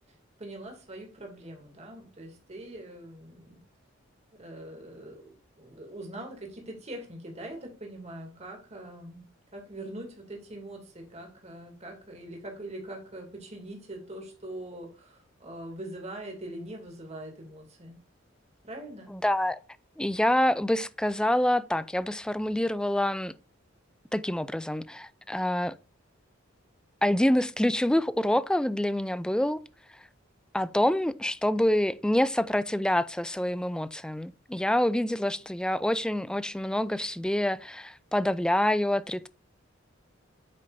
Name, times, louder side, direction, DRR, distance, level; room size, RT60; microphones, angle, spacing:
voice 1, 0.4-3.6 4.3-9.2 9.5-18.0 18.6-19.1, right 1 dB, 35° right, 2.5 m, -42 dB
voice 2, 19.1-19.6 20.0-23.3 24.1-25.7 27.0-29.6 30.5-39.3, left 1 dB, 5° left, 0.3 m, -26 dB
8.6 x 6.3 x 2.6 m
head